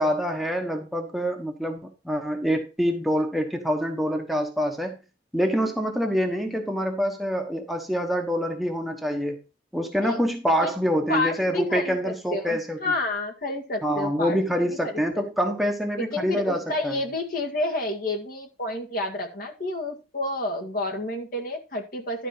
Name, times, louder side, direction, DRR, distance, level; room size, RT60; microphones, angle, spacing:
voice 1, 0.0-5.0 5.3-9.4 9.7-12.8 13.8-17.0, equal, ahead, 3 dB, 1.2 m, -26 dB
voice 2, 11.1-14.4 14.8-15.5 16.0-22.3, left 2 dB, 50° left, 2 dB, 2.0 m, -30 dB
12.0 x 4.5 x 5.6 m, 0.30 s
head